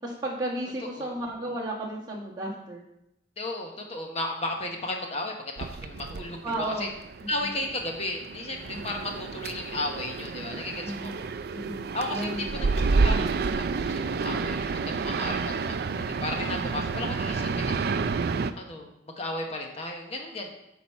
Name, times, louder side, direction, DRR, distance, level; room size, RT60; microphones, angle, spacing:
voice 1, 0.0-2.8 6.4-6.9 7.4-7.5 8.7-9.0 10.8-11.2 11.5-11.8 12.1-12.6, right 1 dB, 25° right, -5 dB, 1.9 m, -33 dB
voice 2, 3.4-6.9 7.3-11.3 11.9-13.3 13.7-17.8 18.6-20.5, left 2 dB, 35° left, 2 dB, 1.1 m, -34 dB
sound 1, 5.6-18.5, right 4 dB, 55° right, 0.4 m, -30 dB
8.6 x 4.1 x 5.6 m, 0.83 s
head